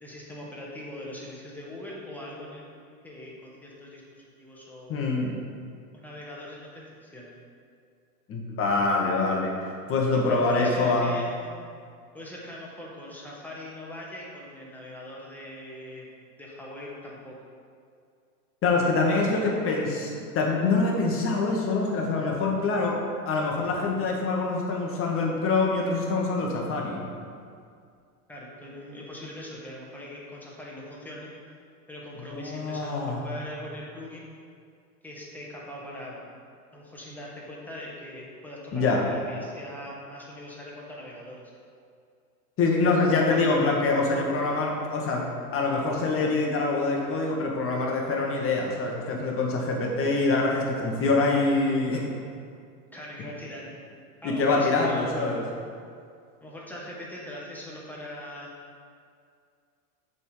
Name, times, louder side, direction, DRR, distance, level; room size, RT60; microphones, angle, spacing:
voice 1, 0.0-5.0 5.9-7.3 10.1-11.5 12.1-16.1 16.4-17.4 19.1-19.5 28.3-31.6 31.9-34.3 35.0-36.3 36.7-41.4 52.9-53.7 54.2-55.2 56.4-58.5, left 1 dB, 5° left, -5 dB, 1.2 m, -41 dB
voice 2, 4.9-5.4 8.3-9.5 9.9-11.1 18.6-23.0 23.3-27.0 32.3-33.2 38.7-39.0 42.6-52.0 54.2-55.4, left 3 dB, 25° left, -1 dB, 1.2 m, -25 dB
6.8 x 3.7 x 4.8 m, 2.3 s
hypercardioid pair, 110°, 48 cm